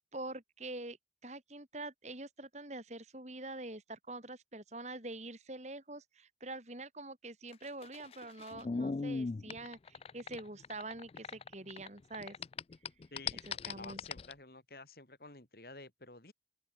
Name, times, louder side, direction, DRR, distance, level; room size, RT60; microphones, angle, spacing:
voice 1, 0.1-1.0 1.2-12.4 13.4-14.0, right 2 dB, 40° right, 4.1 m, -45 dB
sound 1, 7.5-11.9 12.1-14.3, left 4 dB, 35° left, 0.3 m, -39 dB
voice 2, 13.1-16.3, left 2 dB, 55° left, 3.5 m, -52 dB
open air
head